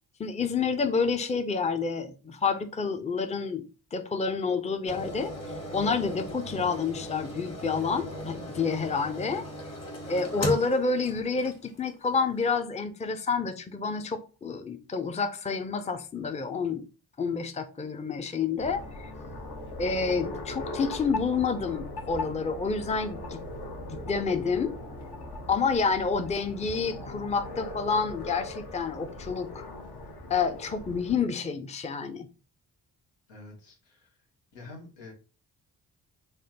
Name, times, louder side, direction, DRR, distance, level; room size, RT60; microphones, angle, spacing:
voice 1, 0.2-5.3 5.7-9.4 10.1-16.8 17.2-19.1 19.8-23.4 23.9-24.8 25.5-29.6 30.3-32.3, left 5 dB, 15° left, 0.5 m, -29 dB
sound 1, 4.9-11.9 12.4-12.5, equal, 35° left, 1.3 m, -37 dB
sound 2, 18.6-31.2, left 2 dB, 60° left, 1.0 m, -39 dB
voice 2, 33.3-34.1 34.5-35.1, left 3 dB, 85° left, 1.2 m, -47 dB
3.4 x 2.1 x 4.3 m
supercardioid pair, 45°, 43 cm